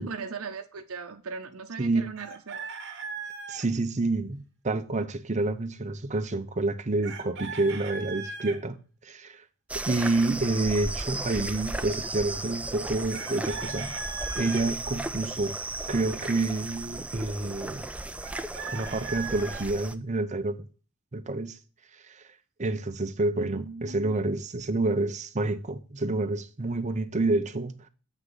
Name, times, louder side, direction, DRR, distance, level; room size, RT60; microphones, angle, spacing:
voice 1, 0.0-2.7 23.2-24.2, right 5 dB, 90° right, 0.7 m, -39 dB
voice 2, 1.8-2.1 3.5-8.8 9.0-9.4 9.9-15.6 15.9-17.9 18.7-20.7 21.1-21.6 22.1-22.2 22.6-27.9, right 2 dB, 35° right, 0.7 m, -28 dB
Chicken rooster, 2.2-3.7 7.0-8.6 13.1-14.7 18.2-19.7, right 4 dB, 55° right, 1.2 m, -38 dB
sound 1, 9.7-19.9, right 2 dB, 5° right, 0.4 m, -35 dB
8.1 x 5.8 x 3.9 m
head